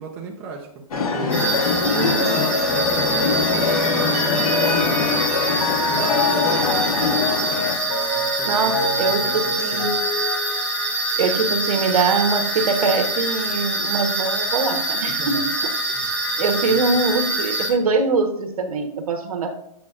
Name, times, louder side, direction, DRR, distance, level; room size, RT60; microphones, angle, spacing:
voice 1, 0.0-1.6 2.0-5.2 5.8-9.9 15.2-15.4 15.9-16.1 16.3-17.0, right 4 dB, 10° right, -1 dB, 0.3 m, -36 dB
sound 1, 0.9-7.8, left 4 dB, 75° left, 1.3 m, -23 dB
sound 2, 1.3-17.7, right 1 dB, 10° left, 0.9 m, -25 dB
voice 2, 1.8-2.3 8.4-10.0 11.2-15.8 16.4-19.6, right 4 dB, 70° right, 6 dB, 1.0 m, -23 dB
Mallet percussion, 3.5-11.3, left 3 dB, 55° left, 0.9 m, -28 dB
8.4 x 5.2 x 2.4 m, 0.73 s
hypercardioid pair, 170°, 19 cm